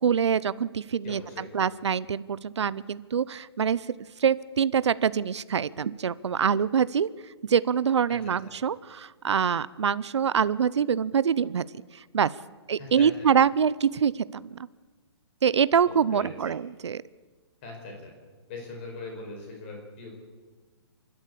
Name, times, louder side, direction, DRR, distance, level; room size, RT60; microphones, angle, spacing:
voice 1, 0.0-3.9 4.2-7.1 7.4-11.7 11.9-12.3 12.7-14.6 15.4-17.0, right 7 dB, 80° right, 19 dB, 0.7 m, -25 dB
voice 2, 1.0-1.5 8.2-8.5 12.8-13.3 16.1-16.5 17.6-18.1 18.5-20.1, left 3 dB, 25° left, 1 dB, 4.9 m, -41 dB
29.0 x 12.5 x 8.4 m, 1.4 s
hypercardioid pair, 175°, 14 cm